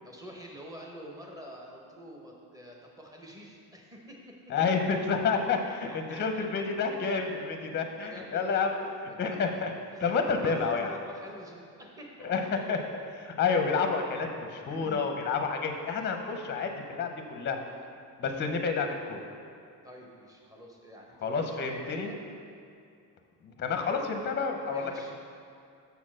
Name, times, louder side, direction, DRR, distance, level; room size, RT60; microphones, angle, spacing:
voice 1, 0.0-4.2 5.6-6.5 7.8-8.9 9.3-9.6 9.9-12.3 14.7-15.1 19.8-22.2 24.7-25.1, equal, 10° right, -1 dB, 0.8 m, -47 dB
voice 2, 4.5-8.8 9.2-9.7 10.0-11.0 12.2-17.6 18.2-19.2 21.2-22.1 23.4-25.1, left 5 dB, 30° left, 4 dB, 0.6 m, -29 dB
6.9 x 4.3 x 6.1 m, 2.4 s
cardioid pair, 160°, 40 cm